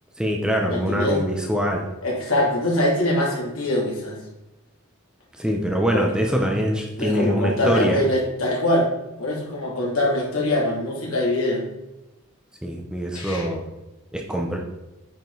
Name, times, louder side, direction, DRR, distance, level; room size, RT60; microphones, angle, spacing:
voice 1, 0.2-1.9 5.4-8.0 12.6-13.6 14.1-14.6, equal, 5° right, 0 dB, 0.9 m, -23 dB
voice 2, 0.7-1.2 2.0-4.2 5.9-6.1 7.0-8.9 9.2-11.6 13.1-13.5, left 1 dB, 70° left, -3 dB, 2.7 m, -23 dB
9.2 x 5.3 x 4.0 m, 0.98 s
head